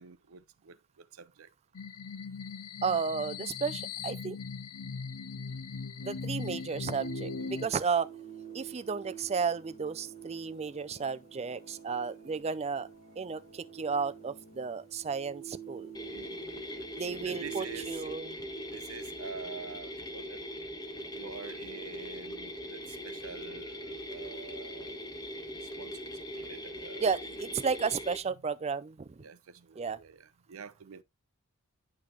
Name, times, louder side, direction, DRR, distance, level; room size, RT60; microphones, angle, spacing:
voice 1, 0.0-1.5 7.4-7.7 16.1-16.8 17.2-18.0 18.7-20.4 21.1-25.0 25.6-27.0 29.2-31.0, right 5 dB, 65° right, 0.6 m, -47 dB
sound 1, 1.7-7.7, left 5 dB, 75° left, 0.7 m, -39 dB
voice 2, 2.8-4.4 6.0-8.1 8.5-12.9 13.2-15.9 17.0-18.4 27.0-29.2 29.8-30.0, right 5 dB, 30° right, 0.4 m, -33 dB
sound 2, 6.6-17.9, right 8 dB, 35° left, 4.4 m, -48 dB
sound 3, 15.9-28.2, equal, 20° left, 1.2 m, -41 dB
10.5 x 5.5 x 2.8 m
head